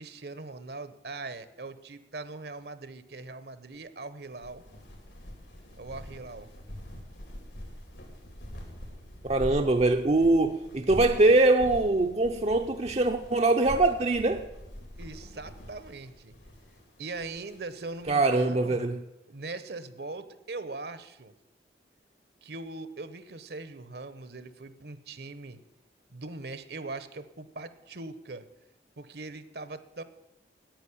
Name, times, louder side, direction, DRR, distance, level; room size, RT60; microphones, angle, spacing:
voice 1, 0.0-4.6 5.8-6.5 15.0-16.3 17.0-18.8 19.3-21.3 22.4-25.6 26.1-28.5 29.0-30.0, right 3 dB, 60° right, 13 dB, 0.9 m, -41 dB
sound 1, 4.3-18.4, equal, 85° left, 3.7 m, -44 dB
voice 2, 9.2-14.5 18.1-19.0, right 2 dB, 35° right, 5 dB, 0.6 m, -23 dB
10.5 x 9.2 x 9.8 m, 0.93 s
head